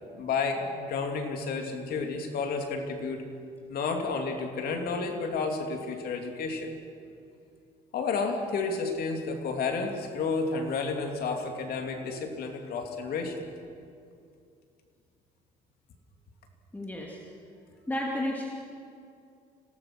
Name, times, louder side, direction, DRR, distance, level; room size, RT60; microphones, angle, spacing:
voice 1, 0.1-3.2 3.7-6.7 7.9-13.5, left 4 dB, 65° left, 4 dB, 3.1 m, -31 dB
voice 2, 16.7-17.2 17.9-18.5, left 1 dB, 10° left, -2 dB, 2.6 m, -32 dB
26.5 x 18.0 x 6.3 m, 2.4 s
cardioid pair, 110°, 17 cm